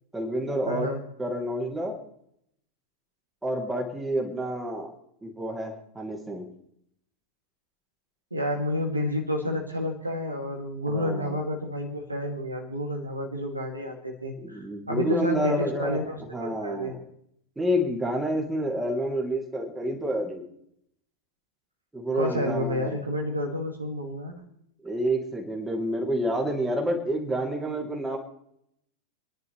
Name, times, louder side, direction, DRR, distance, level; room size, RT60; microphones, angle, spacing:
voice 1, 0.1-0.9 1.2-1.9 3.4-4.9 5.2-6.5 10.9-11.3 14.4-17.0 17.6-20.4 21.9-23.0 24.8-28.2, equal, 10° right, 1 dB, 2.7 m, -29 dB
voice 2, 0.7-1.0 8.3-16.9 22.1-24.3, left 1 dB, 85° right, 2 dB, 2.3 m, -30 dB
29.5 x 10.5 x 3.2 m, 0.74 s
figure-of-eight pair, 90°, 0 cm